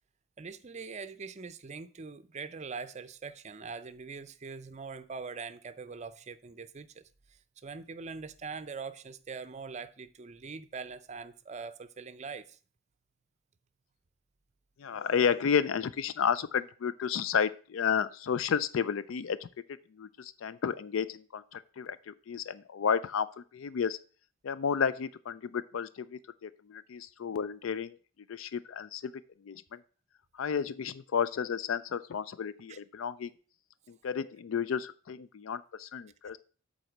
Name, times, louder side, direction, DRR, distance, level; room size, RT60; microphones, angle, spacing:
voice 1, 0.4-12.6 32.7-32.8, right 5 dB, 35° right, 0.5 m, -43 dB
voice 2, 14.8-19.5 20.0-23.3 23.5-24.0 24.4-28.0 28.3-29.1 29.4-29.8 30.3-33.3 33.9-36.4, left 7 dB, 70° left, 0.4 m, -32 dB
8.0 x 4.2 x 5.9 m
head